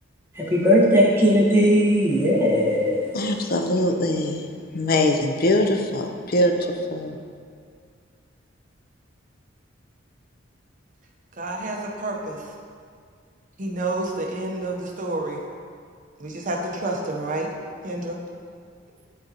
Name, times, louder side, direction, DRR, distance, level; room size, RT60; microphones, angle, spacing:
voice 1, 0.3-3.2, equal, 10° right, -5 dB, 1.1 m, -18 dB
voice 2, 3.1-4.4 4.7-7.2, left 1 dB, 50° left, 5 dB, 0.5 m, -22 dB
voice 3, 11.4-12.4 13.6-15.4 16.2-17.5 17.8-18.2, right 2 dB, 45° right, 0 dB, 0.8 m, -29 dB
11.0 x 3.9 x 2.8 m, 2.2 s
head